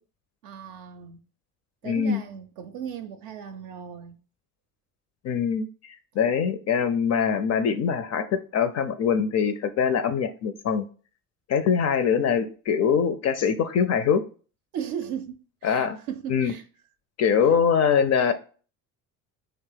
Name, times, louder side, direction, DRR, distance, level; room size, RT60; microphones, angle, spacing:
voice 1, 0.4-1.2 1.8-4.2 14.7-16.6, right 8 dB, 60° right, 0.5 m, -36 dB
voice 2, 1.8-2.2 5.2-10.8 11.5-14.2 15.6-16.0 16.3-16.5 17.2-18.3, left 7 dB, 40° left, 0.4 m, -23 dB
3.0 x 2.9 x 3.3 m
hypercardioid pair, 60°, 41 cm